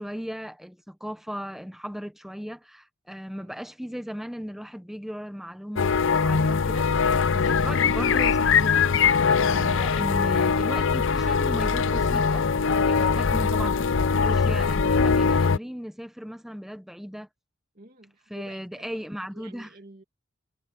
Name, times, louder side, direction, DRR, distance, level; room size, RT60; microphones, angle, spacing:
voice 1, 0.0-6.9 7.3-8.9 9.4-17.3 18.3-19.7, equal, ahead, 1.2 m, -37 dB
sound 1, 5.8-15.6, left 5 dB, 65° left, 0.6 m, -22 dB
voice 2, 7.1-8.4 17.7-20.0, right 2 dB, 45° right, 2.6 m, -51 dB
head